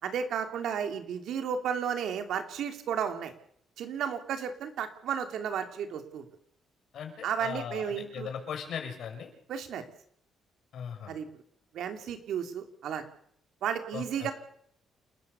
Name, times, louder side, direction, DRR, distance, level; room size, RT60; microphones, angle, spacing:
voice 1, 0.0-3.3 3.8-6.3 7.2-8.3 9.5-9.8 11.1-11.3 11.7-13.0 13.6-14.3, right 8 dB, 75° right, 7 dB, 3.0 m, -33 dB
voice 2, 6.9-9.3 10.7-11.2 13.9-14.3, left 7 dB, 70° left, 4 dB, 6.0 m, -38 dB
28.5 x 13.5 x 7.0 m, 0.67 s
cardioid pair, 90°, 0 cm